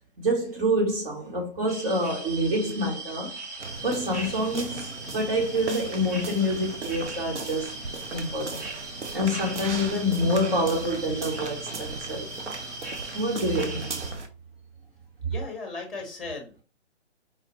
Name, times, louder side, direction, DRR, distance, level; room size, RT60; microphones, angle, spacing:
voice 1, 0.2-3.3 3.8-7.8 8.1-8.7 9.1-12.3 13.1-13.9, equal, 55° right, 1.6 m, -27 dB
sound 1, 1.7-14.1, right 2 dB, 15° right, 0.4 m, -39 dB
sound 2, 3.6-14.3, right 4 dB, 80° right, 0.9 m, -38 dB
voice 2, 15.2-16.6, left 3 dB, ahead, 1.0 m, -37 dB
4.8 x 2.5 x 3.0 m
figure-of-eight pair, 135°, 34 cm